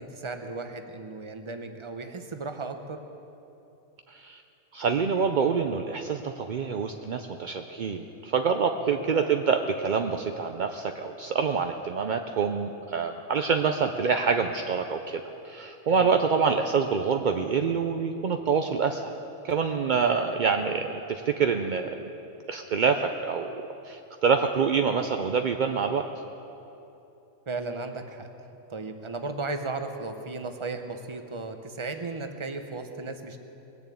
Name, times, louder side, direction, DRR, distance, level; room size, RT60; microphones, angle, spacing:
voice 1, 0.0-3.0 8.8-9.0 15.9-16.2 19.9-20.2 27.5-28.3 28.7-33.4, right 3 dB, 25° right, 6 dB, 0.8 m, -35 dB
voice 2, 4.1-4.4 4.7-19.1 19.4-22.0 22.5-26.1, right 5 dB, 60° right, 5 dB, 0.5 m, -26 dB
21.0 x 7.2 x 8.5 m, 2.9 s
omnidirectional pair, 1.5 m